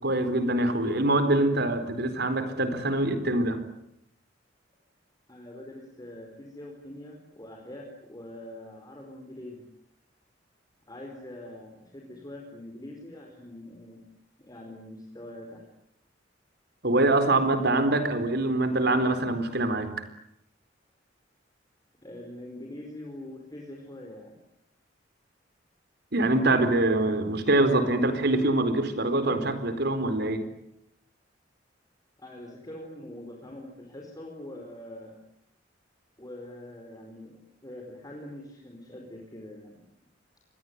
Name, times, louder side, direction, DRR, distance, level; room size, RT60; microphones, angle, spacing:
voice 1, 0.0-3.6 16.8-20.0 26.1-30.4, right 2 dB, 60° right, 10 dB, 4.3 m, -24 dB
voice 2, 5.3-9.6 10.9-14.0 14.4-15.6 22.0-24.4 32.2-35.2 36.2-39.8, left 1 dB, 20° left, 1 dB, 4.8 m, -43 dB
27.0 x 22.0 x 9.7 m, 0.76 s
head